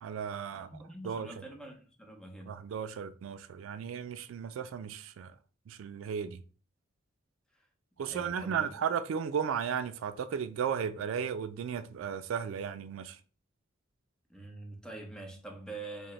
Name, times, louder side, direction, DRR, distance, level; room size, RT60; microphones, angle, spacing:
voice 1, 0.0-0.7 1.0-1.5 2.5-5.3 5.7-6.4 8.0-13.2, right 7 dB, 80° right, 0.3 m, -35 dB
voice 2, 0.5-2.6 7.5-7.7 8.1-8.7 14.3-16.1, right 2 dB, 5° left, 0.8 m, -45 dB
4.9 x 2.0 x 3.1 m
head